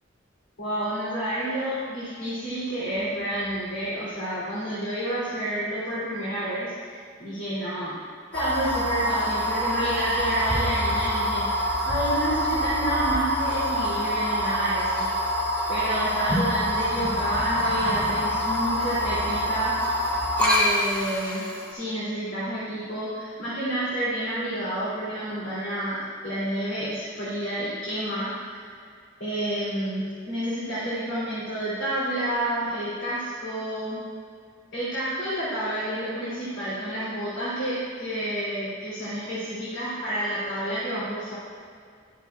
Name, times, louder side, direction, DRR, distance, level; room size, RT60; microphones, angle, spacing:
voice 1, 0.6-8.0 8.3-11.5 11.8-15.1 15.7-20.1 20.4-28.9 29.2-34.0 34.7-41.3, right 1 dB, 70° left, -10 dB, 2.8 m, -29 dB
sound 1, 8.3-21.7, equal, 10° left, 2.4 m, -25 dB
12.5 x 12.0 x 2.4 m, 2.2 s
head